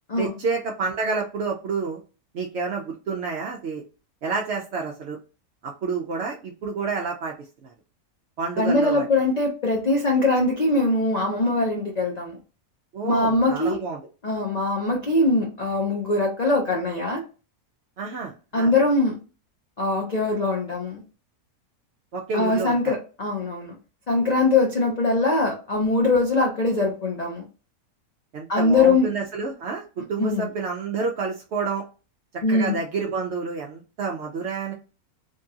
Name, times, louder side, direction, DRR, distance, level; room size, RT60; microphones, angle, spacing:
voice 1, 0.2-2.0 2.3-3.8 4.2-5.2 5.6-7.3 7.6-7.7 8.4-9.1 12.9-14.0 18.0-18.7 22.1-22.9 28.3-29.8 30.1-31.8 32.5-34.7, right 4 dB, 70° right, 1 dB, 0.6 m, -29 dB
voice 2, 8.6-12.4 13.0-13.8 14.2-17.2 18.5-19.2 19.8-21.0 22.3-23.8 24.1-27.4 28.5-29.1 30.2-30.5 32.4-32.8, left 2 dB, 80° left, 0 dB, 0.3 m, -22 dB
2.9 x 2.7 x 2.3 m, 0.34 s
omnidirectional pair, 1.6 m